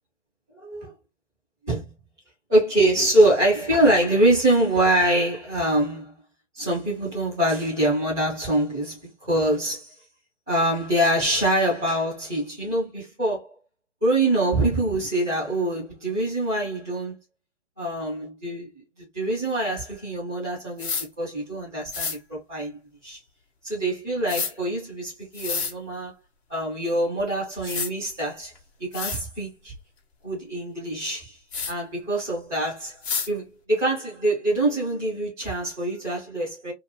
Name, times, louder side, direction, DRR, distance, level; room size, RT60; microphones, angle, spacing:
voice 1, 0.5-0.9 1.7-1.9 2.5-6.2 6.5-9.9 10.5-13.5 14.0-17.2 17.8-18.7 19.1-23.2 23.6-26.1 26.5-28.5 28.8-29.7 30.2-31.4 31.7-33.0 33.3-36.7, right 1 dB, 5° right, 0.3 m, -24 dB
sound 1, 20.8-21.1 21.9-22.2 24.3-24.5 25.3-25.7 27.2-27.3 27.7-27.9 28.6-28.7 28.9-29.2 31.5-31.7 33.0-33.3, left 5 dB, 60° left, 1.1 m, -28 dB
2.8 x 2.4 x 2.8 m
figure-of-eight pair, 135°, 35 cm